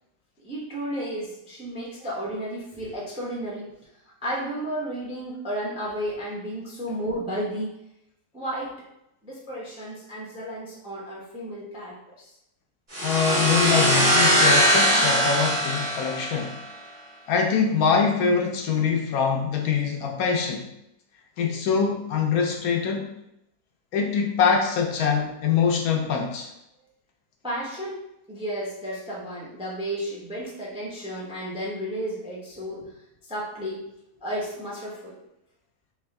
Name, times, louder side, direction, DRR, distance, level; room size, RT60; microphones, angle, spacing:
voice 1, 0.4-3.7 4.2-7.8 8.3-8.8 9.2-12.3 27.4-28.0 28.3-32.9 33.3-33.8 34.2-35.2, right 1 dB, 5° right, -5 dB, 0.5 m, -33 dB
sound 1, 12.9-16.6, equal, 35° right, 1.5 m, -21 dB
voice 2, 13.0-16.6 17.3-20.7 21.4-23.1 23.9-26.5, left 6 dB, 75° left, 1 dB, 1.0 m, -24 dB
3.5 x 2.9 x 3.3 m, 0.83 s
omnidirectional pair, 1.6 m